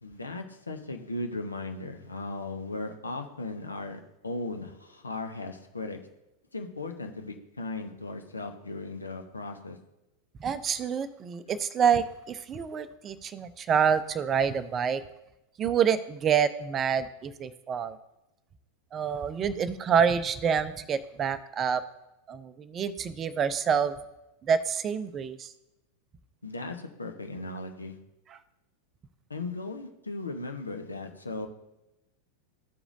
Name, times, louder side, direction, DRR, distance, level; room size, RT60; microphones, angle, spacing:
voice 1, 0.0-6.0 6.5-9.8 26.4-28.0 29.3-31.5, left 2 dB, 80° left, 5 dB, 0.9 m, -37 dB
voice 2, 10.4-15.0 15.6-18.0 18.9-21.8 22.3-24.0 24.4-25.5, right 7 dB, 25° right, 14 dB, 0.5 m, -27 dB
14.5 x 4.9 x 2.6 m, 0.94 s
figure-of-eight pair, 90°, 0 cm